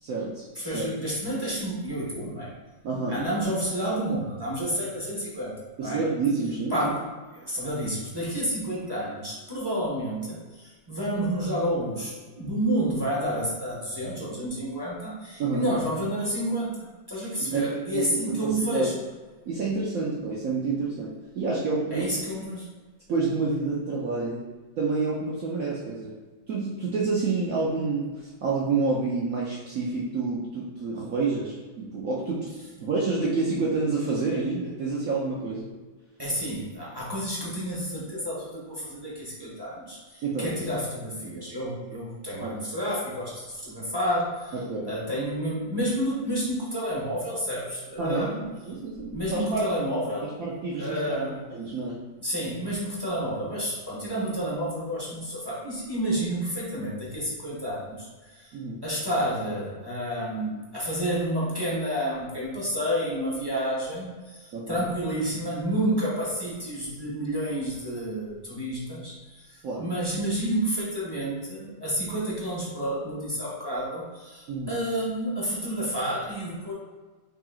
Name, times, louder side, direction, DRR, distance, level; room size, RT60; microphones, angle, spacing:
voice 1, 0.0-0.4 0.7-0.9 2.8-3.2 5.8-6.9 15.4-15.7 17.4-18.9 19.5-22.1 23.1-24.4 24.8-26.1 26.5-32.5 32.8-35.7 40.2-40.5 42.4-42.5 44.5-44.9 48.0-49.7 50.2-51.2 51.5-52.0 58.5-58.8 64.5-64.8 69.6-69.9 74.5-74.8, right 4 dB, 65° right, -5 dB, 0.8 m, -28 dB
voice 2, 0.5-2.5 3.1-6.0 6.7-7.1 7.3-19.0 21.9-22.7 36.2-44.6 44.8-48.4 49.0-50.4 50.7-51.4 52.2-58.5 58.8-76.7, equal, 15° right, -7 dB, 0.8 m, -30 dB
5.7 x 3.8 x 2.4 m, 1.3 s
omnidirectional pair, 2.1 m